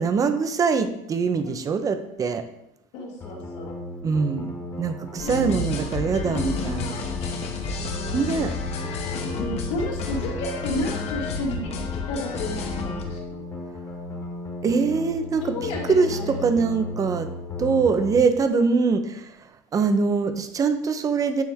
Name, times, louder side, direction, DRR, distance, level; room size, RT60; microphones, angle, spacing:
voice 1, 0.0-2.4 4.0-7.0 8.1-8.5 14.6-17.3 17.6-19.3 19.7-21.4, right 5 dB, 20° right, 9 dB, 0.5 m, -23 dB
voice 2, 2.9-3.7 5.2-5.4 6.2-7.4 7.8-8.2 9.3-11.7 12.1-13.5 15.4-16.6, left 2 dB, 80° left, -3 dB, 2.2 m, -32 dB
sound 1, 3.2-18.2, left 1 dB, 20° left, 1.2 m, -35 dB
sound 2, 5.2-13.0, left 4 dB, 40° left, 0.9 m, -31 dB
9.1 x 3.3 x 3.5 m, 0.82 s
cardioid pair, 145°, 17 cm